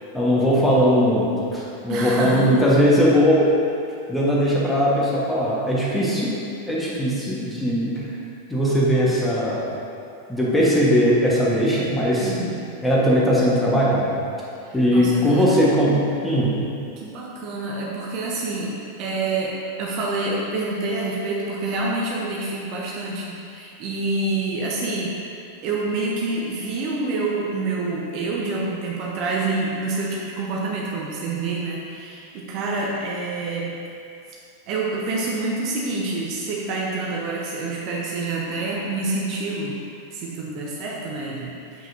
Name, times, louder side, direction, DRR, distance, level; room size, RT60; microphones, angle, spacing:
voice 1, 0.1-3.5 4.1-6.3 6.7-8.0 8.5-9.7 10.3-12.3 12.8-14.1 14.7-16.6, equal, 5° left, -7 dB, 1.4 m, -19 dB
voice 2, 1.9-2.6 12.2-12.7 14.6-15.6 17.0-25.2 25.6-33.8 34.7-39.8 40.1-41.9, right 3 dB, 40° right, -3 dB, 0.8 m, -27 dB
7.4 x 5.9 x 2.8 m, 2.5 s
figure-of-eight pair, 90°, 0 cm